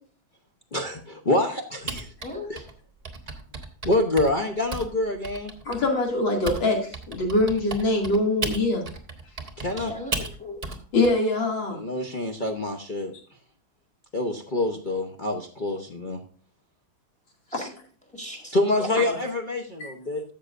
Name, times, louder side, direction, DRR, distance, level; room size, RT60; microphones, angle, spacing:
voice 1, 0.7-2.1 2.5-2.6 3.8-5.5 9.6-9.9 11.7-13.1 14.1-16.2 18.5-20.2, left 2 dB, 45° left, 2 dB, 0.6 m, -26 dB
Typing, 1.9-6.6 6.9-11.1, right 3 dB, 25° right, 0.9 m, -34 dB
voice 2, 5.6-8.8 10.9-11.8, left 2 dB, 70° left, -1 dB, 3.2 m, -23 dB
voice 3, 9.8-10.6 17.5-17.7 18.1-18.9, left 1 dB, 5° left, 2 dB, 1.7 m, -37 dB
13.0 x 7.1 x 2.5 m, 0.40 s
omnidirectional pair, 2.1 m